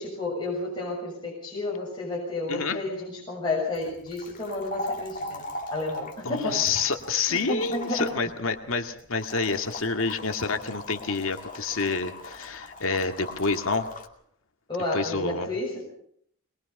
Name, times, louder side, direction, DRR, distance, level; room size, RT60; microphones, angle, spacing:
voice 1, 0.0-5.4 5.7-6.7 7.3-8.1 14.7-15.8, left 2 dB, 20° left, -5 dB, 6.8 m, -31 dB
voice 2, 2.5-2.8 6.2-13.9 14.9-15.5, left 4 dB, 65° left, 5 dB, 2.1 m, -28 dB
sound 1, 3.7-14.1, left 1 dB, 35° left, 2.5 m, -39 dB
22.5 x 21.5 x 5.5 m, 0.66 s
head